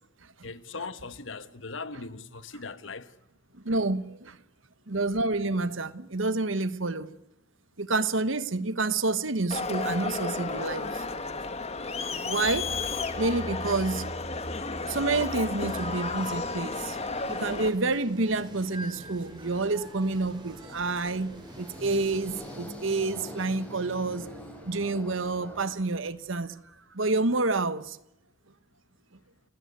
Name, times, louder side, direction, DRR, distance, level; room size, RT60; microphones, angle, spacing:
voice 1, 0.4-3.1, left 4 dB, 70° left, 1.4 m, -39 dB
voice 2, 3.5-4.4 4.9-7.1 7.8-11.0 12.3-12.7 13.1-14.1 14.9-17.0 17.2-26.5 26.9-28.0, right 3 dB, 75° right, 1.3 m, -28 dB
Crowd, 9.5-17.7, left 3 dB, 30° left, 1.9 m, -32 dB
sound 1, 15.6-22.6, equal, 20° right, 7.9 m, -46 dB
sound 2, 21.2-26.3, left 1 dB, 5° left, 7.9 m, -44 dB
29.5 x 17.0 x 9.7 m
head